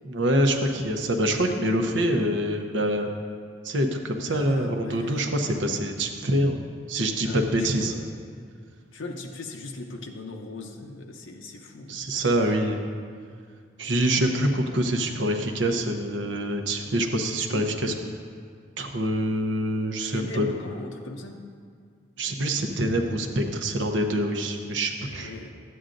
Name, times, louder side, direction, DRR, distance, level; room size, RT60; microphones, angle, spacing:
voice 1, 0.1-3.1 3.6-6.6 6.9-7.9 11.9-12.8 13.8-17.9 18.8-20.5 22.2-25.3, right 1 dB, 80° right, 4 dB, 0.8 m, -25 dB
voice 2, 4.1-5.3 7.2-8.1 8.9-12.0 17.2-17.3 20.1-21.4 25.2-25.5, left 2 dB, 85° left, 2 dB, 0.7 m, -38 dB
12.5 x 8.7 x 2.6 m, 2.1 s
head